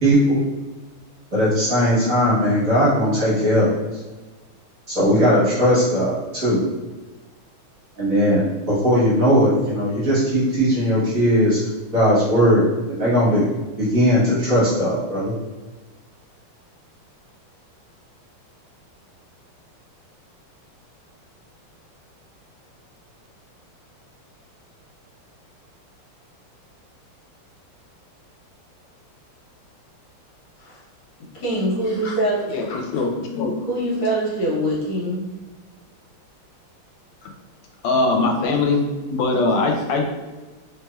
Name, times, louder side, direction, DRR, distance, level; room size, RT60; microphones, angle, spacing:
voice 1, 0.0-0.4 1.3-4.0 4.9-6.6 8.0-11.6 11.9-13.4 13.8-15.3, equal, 50° right, -9 dB, 1.3 m, -18 dB
voice 2, 31.3-32.6 32.9-33.0 33.7-35.3 39.7-40.0, right 1 dB, 65° left, -6 dB, 1.8 m, -24 dB
voice 3, 32.5-33.5 37.8-40.0, left 3 dB, 90° left, 2 dB, 1.5 m, -21 dB
3.3 x 3.1 x 2.2 m, 1.2 s
omnidirectional pair, 2.4 m